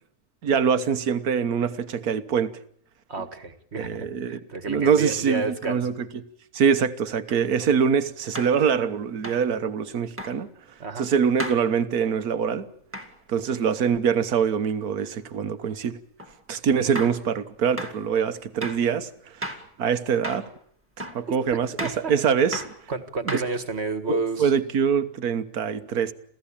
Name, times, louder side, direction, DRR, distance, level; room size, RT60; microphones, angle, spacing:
voice 1, 0.4-2.5 3.8-4.4 4.7-5.9 6.5-10.5 11.0-12.7 13.3-16.0 16.5-20.5 21.0-22.7 23.3-23.4 24.1-26.1, right 7 dB, 80° right, 1.7 m, -24 dB
voice 2, 3.1-5.9 10.8-11.0 21.8-22.1 22.9-24.5, right 3 dB, 45° right, 2.0 m, -30 dB
sound 1, 7.3-7.4 8.4-8.6 9.2-9.5 10.2-10.4 11.4-11.7 12.9-13.1 16.2-16.3 17.0-17.2 17.8-18.0 18.6-18.9 19.4-19.7 20.2-20.5 21.0-21.2 21.8-22.1 22.5-22.8 23.3-23.8, equal, 10° right, 2.2 m, -34 dB
28.0 x 16.0 x 8.7 m
omnidirectional pair, 1.6 m